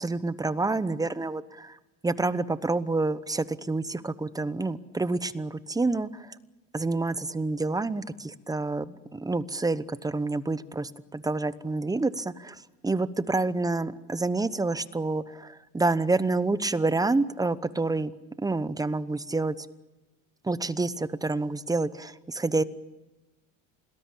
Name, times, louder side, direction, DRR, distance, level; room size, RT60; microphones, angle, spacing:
voice 1, 0.0-1.8 2.0-6.4 6.7-12.6 12.8-18.1 18.4-19.6 20.4-22.6, right 3 dB, 10° right, 15 dB, 0.9 m, -28 dB
28.0 x 19.5 x 8.5 m, 1.1 s
supercardioid pair, 120°, 37 cm